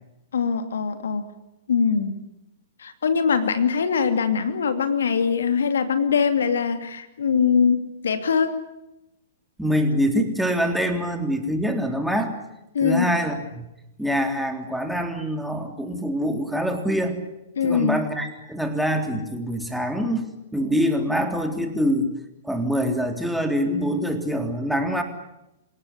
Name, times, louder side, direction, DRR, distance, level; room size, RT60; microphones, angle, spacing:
voice 1, 0.3-1.3 1.7-2.2 2.8-8.6 12.7-13.1 17.6-18.0, left 6 dB, 75° left, 9 dB, 2.7 m, -22 dB
voice 2, 9.6-12.3 12.8-13.7 14.0-17.2 17.6-20.2 20.5-22.2 22.4-25.0, equal, ahead, 4 dB, 3.6 m, -24 dB
27.5 x 17.5 x 10.0 m, 0.90 s
hypercardioid pair, 115°, 0 cm